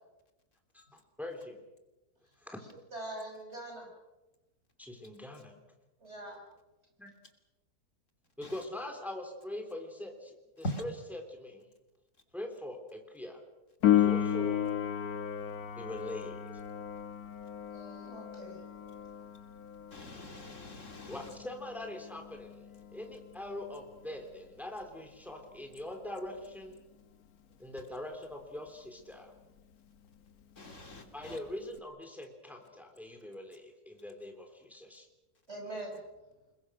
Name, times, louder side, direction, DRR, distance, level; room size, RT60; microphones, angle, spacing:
voice 1, 1.2-1.6 2.4-2.6 4.8-5.5 7.0-7.1 8.4-10.9 11.3-11.7 12.3-13.4 14.0-14.7 15.7-16.4 21.1-26.8 27.6-29.3 31.1-35.1, left 1 dB, ahead, 3.2 m, -42 dB
voice 2, 2.9-3.9 6.0-6.4 17.7-18.6 31.3-31.4 35.5-36.0, right 1 dB, 45° right, 5.9 m, -43 dB
Piano, 13.8-24.2 31.8-31.9, left 10 dB, 70° left, 1.6 m, -34 dB
voice 3, 19.9-21.3 30.6-31.4, equal, 50° left, 3.3 m, -41 dB
28.5 x 21.5 x 6.3 m
omnidirectional pair, 1.6 m